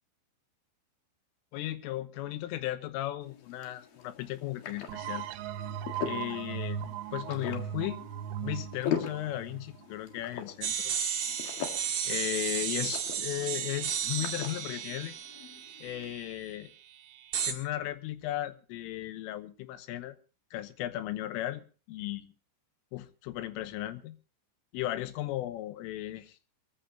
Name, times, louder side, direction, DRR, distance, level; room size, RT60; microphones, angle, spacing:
voice 1, 1.5-5.3 6.0-8.0 8.4-10.9 12.1-15.2 15.8-16.7 17.5-20.2 20.5-22.3 22.9-24.2 24.7-26.4, left 14 dB, 85° left, 11 dB, 3.5 m, -36 dB
sound 1, 3.2-16.1, left 8 dB, 55° left, 3.2 m, -42 dB
sound 2, 4.9-10.4, right 10 dB, 80° right, 3.2 m, -38 dB
sound 3, 10.6-16.3 17.3-17.5, right 8 dB, 60° right, 2.3 m, -33 dB
23.5 x 14.5 x 2.8 m, 0.35 s
omnidirectional pair, 5.7 m